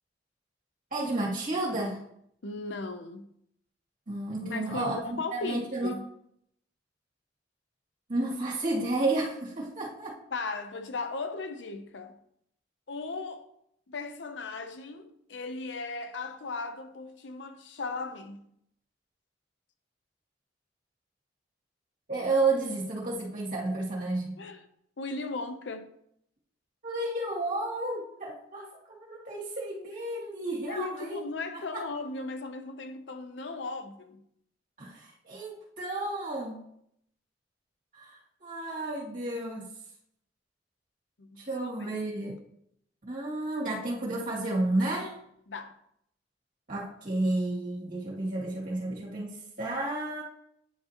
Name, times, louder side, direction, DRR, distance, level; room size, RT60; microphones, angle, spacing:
voice 1, 0.9-2.0 4.1-5.9 8.1-10.1 22.1-24.4 26.8-31.2 31.7-31.8 34.8-36.6 38.0-39.7 41.5-42.4 43.0-45.2 46.7-50.2, right 2 dB, 50° right, 2.4 m, -31 dB
voice 2, 2.4-3.3 4.4-6.1 10.3-12.2 12.9-13.5 13.9-18.5 24.4-24.6 25.0-25.9 30.7-34.2 41.2-42.0 45.5-45.8, left 3 dB, 75° left, 0.7 m, -37 dB
9.9 x 4.9 x 2.9 m
head